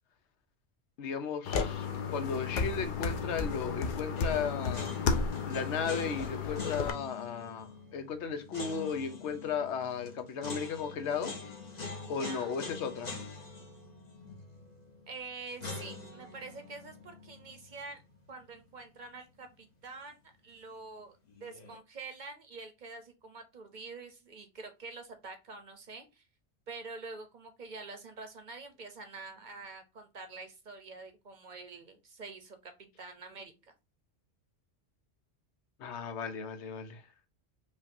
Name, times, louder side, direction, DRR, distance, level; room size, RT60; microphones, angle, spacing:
voice 1, 1.0-5.0 5.5-11.3 12.1-13.2 35.8-37.0, left 6 dB, 85° left, 1.0 m, -35 dB
sound 1, 1.5-6.9, left 5 dB, 55° left, 0.6 m, -33 dB
sound 2, 4.2-19.2 19.4-19.5 21.3-21.8, left 4 dB, 40° left, 1.1 m, -45 dB
voice 2, 12.0-12.5 15.1-18.0 18.3-20.2 20.4-26.3 26.7-33.7, right 3 dB, 50° right, 0.8 m, -46 dB
5.2 x 2.4 x 2.6 m
omnidirectional pair, 1.1 m